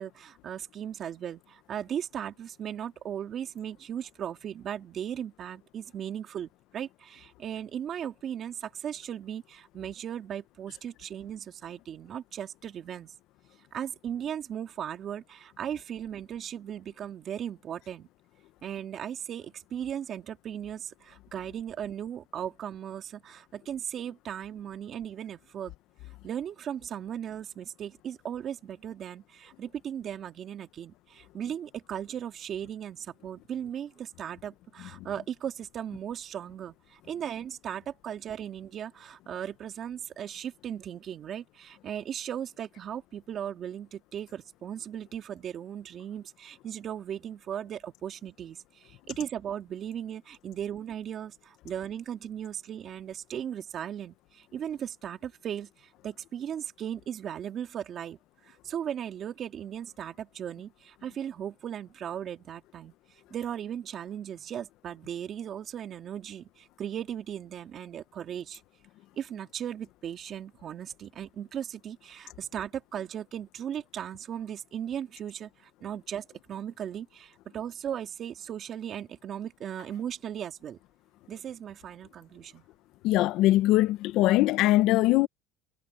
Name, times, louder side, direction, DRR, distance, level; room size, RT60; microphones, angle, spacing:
voice 1, 0.0-13.1 13.7-18.1 18.6-25.7 26.2-58.2 58.5-62.9 63.3-68.6 69.2-80.8 81.3-82.6, right 9 dB, 40° right, 2.5 m, -37 dB
voice 2, 83.0-85.3, left 16 dB, 60° left, 1.1 m, -22 dB
supercardioid pair, 120°, 0 cm